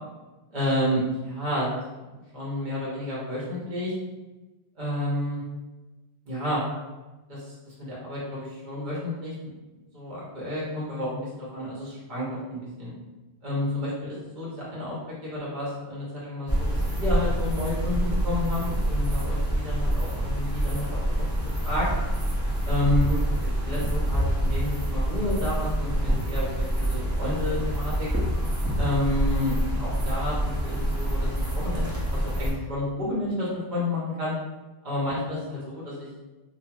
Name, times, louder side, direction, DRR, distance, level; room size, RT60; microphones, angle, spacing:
voice 1, 0.5-1.7 2.3-3.9 4.8-5.4 6.3-6.6 7.3-7.5 7.8-9.5 9.9-12.9 13.4-21.0 21.6-21.9 22.6-23.0 23.6-28.1 28.8-34.3 34.8-36.1, left 1 dB, 45° right, -7 dB, 0.9 m, -30 dB
sound 1, 16.5-32.5, right 1 dB, 20° right, 0.4 m, -26 dB
3.0 x 2.4 x 2.3 m, 1.1 s
omnidirectional pair, 1.1 m